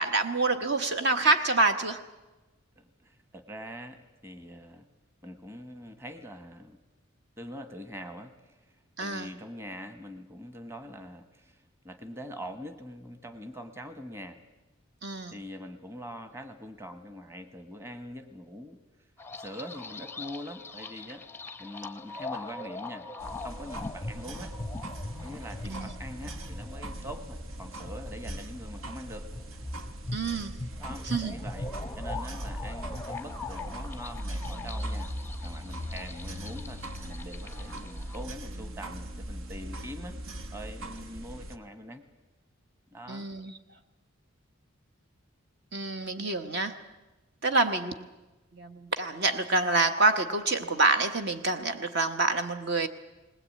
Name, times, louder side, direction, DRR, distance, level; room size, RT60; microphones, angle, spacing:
voice 1, 0.0-2.0 9.0-9.3 15.0-15.3 25.6-25.9 30.1-30.6 31.1-31.3 43.1-43.5 45.7-46.8 47.4-48.0 48.5-52.9, right 3 dB, 50° right, 8 dB, 1.0 m, -27 dB
voice 2, 2.8-4.9 5.2-6.8 7.4-14.4 15.3-18.8 19.4-21.2 21.6-23.1 23.4-24.5 25.2-29.3 30.8-31.7 32.0-35.1 35.4-40.1 40.5-42.0 42.9-43.3, equal, 10° right, 9 dB, 1.3 m, -43 dB
sound 1, 19.2-38.2, left 3 dB, 10° left, 0.7 m, -42 dB
sound 2, 23.2-41.6, right 1 dB, 75° right, 1.2 m, -39 dB
20.0 x 20.0 x 8.5 m, 1.1 s
head